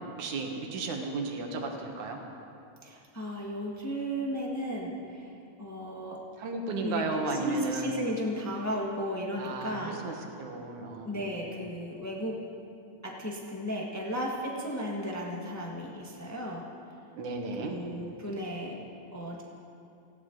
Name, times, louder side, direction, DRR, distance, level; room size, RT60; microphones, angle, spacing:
voice 1, 0.2-2.2 6.4-7.9 9.4-11.3 17.1-17.7, right 3 dB, 85° right, 2 dB, 2.8 m, -34 dB
voice 2, 2.8-5.3 5.6-6.2 6.8-10.0 11.0-12.4 13.0-16.6 17.6-18.8 19.1-19.4, equal, 25° left, -2 dB, 0.4 m, -34 dB
19.0 x 16.5 x 3.9 m, 2.6 s
omnidirectional pair, 3.3 m